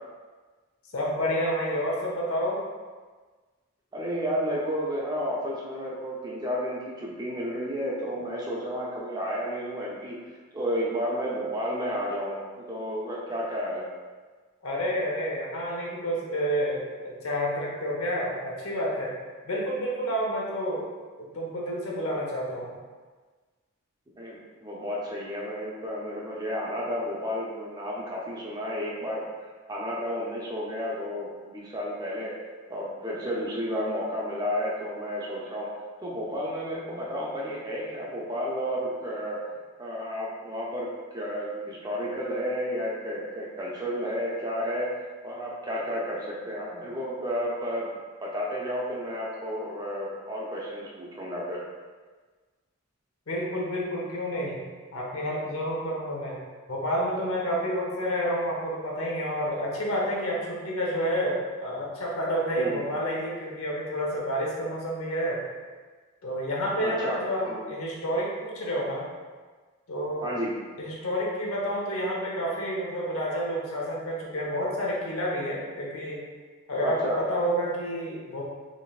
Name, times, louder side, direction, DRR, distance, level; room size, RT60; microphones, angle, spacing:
voice 1, 0.9-2.6 14.6-19.2 19.4-20.9 21.2-22.8 53.3-54.6 54.9-56.4 56.7-65.4 66.2-69.1 69.9-70.3 70.8-76.2 76.7-78.5, equal, 80° left, -3 dB, 0.8 m, -29 dB
voice 2, 3.9-10.2 10.5-13.9 24.2-29.3 29.7-32.4 32.7-35.7 36.0-39.4 39.8-40.9 41.1-44.9 45.2-47.9 48.2-51.6 62.6-62.8 66.8-67.6 70.2-70.5 76.8-77.2, equal, 20° right, -4 dB, 0.6 m, -32 dB
4.1 x 3.2 x 2.4 m, 1.4 s
head